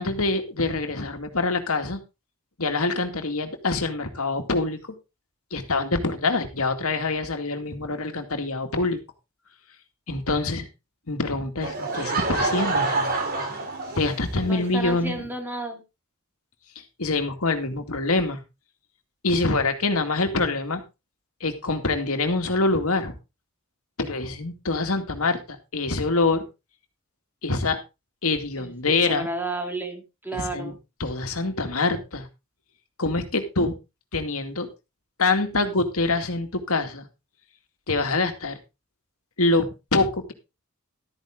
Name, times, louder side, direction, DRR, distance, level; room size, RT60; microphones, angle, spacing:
voice 1, 0.0-2.0 2.6-4.8 5.5-9.0 10.1-10.7 11.1-13.1 14.0-15.2 17.0-18.4 19.2-20.8 21.4-23.2 24.0-26.4 27.4-27.8 28.2-29.3 30.3-30.7 31.0-32.3 33.0-33.7 34.1-34.7 35.2-37.1 37.9-38.6 39.4-40.3, left 3 dB, 75° left, 6 dB, 2.3 m, -25 dB
Laughter / Crowd, 11.6-14.5, right 3 dB, 45° right, 3.4 m, -27 dB
voice 2, 14.4-15.8 28.6-30.8, right 2 dB, 10° right, 3 dB, 2.8 m, -32 dB
13.0 x 9.4 x 3.8 m, 0.27 s
head